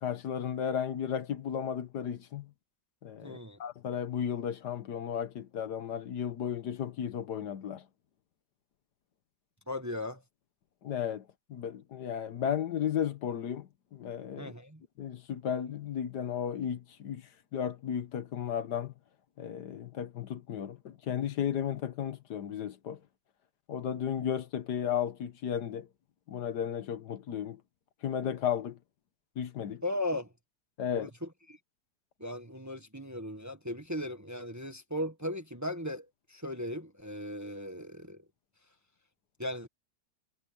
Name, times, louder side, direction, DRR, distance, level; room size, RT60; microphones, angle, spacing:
voice 1, 0.0-2.5 3.0-7.9 10.8-11.2 11.5-14.5 15.0-17.2 17.5-18.9 19.4-23.0 23.7-25.9 26.3-27.6 28.0-28.8 29.4-29.8 30.8-31.1, left 9 dB, 70° left, 1.6 m, -34 dB
voice 2, 3.2-3.6 9.7-10.2 14.4-14.8 29.8-30.3 30.9-31.6 32.2-38.2 39.4-39.7, left 1 dB, 10° right, 1.2 m, -37 dB
omnidirectional pair, 1.9 m